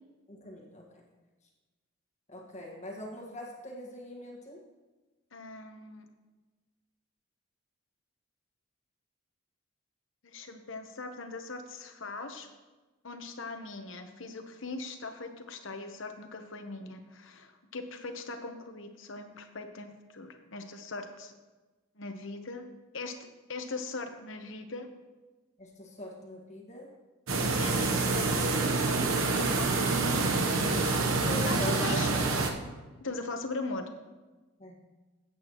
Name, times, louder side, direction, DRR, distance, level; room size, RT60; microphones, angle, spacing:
voice 1, 0.3-0.9 2.3-4.6 25.6-26.9 31.3-32.3 34.6-34.8, left 1 dB, 35° left, -2 dB, 1.7 m, -42 dB
voice 2, 5.3-6.0 10.2-12.5 13.0-21.3 22.0-22.7 22.9-23.2 23.5-24.9 27.6-30.5 31.4-32.1 33.0-33.9, left 3 dB, 65° left, 6 dB, 1.0 m, -40 dB
sound 1, 27.3-32.5, right 3 dB, 75° right, 1.1 m, -27 dB
16.5 x 8.3 x 3.1 m, 1.2 s
head